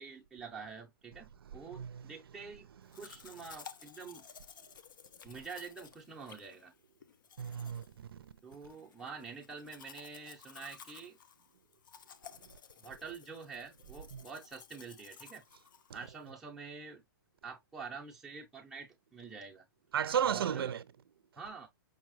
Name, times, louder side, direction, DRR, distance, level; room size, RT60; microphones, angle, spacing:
voice 1, 0.0-2.7 3.0-4.3 5.2-6.7 8.4-11.2 12.8-15.4 15.9-17.0 17.4-19.6 20.2-20.7 21.4-21.7, right 5 dB, 5° right, 0.5 m, -47 dB
voice 2, 1.7-2.1 7.4-8.3 14.1-14.2 19.9-20.8, right 8 dB, 85° right, 0.5 m, -34 dB
Domestic sounds home sounds, 2.9-16.3, left 7 dB, 60° left, 0.6 m, -55 dB
5.4 x 2.3 x 3.0 m
hypercardioid pair, 170°, 12 cm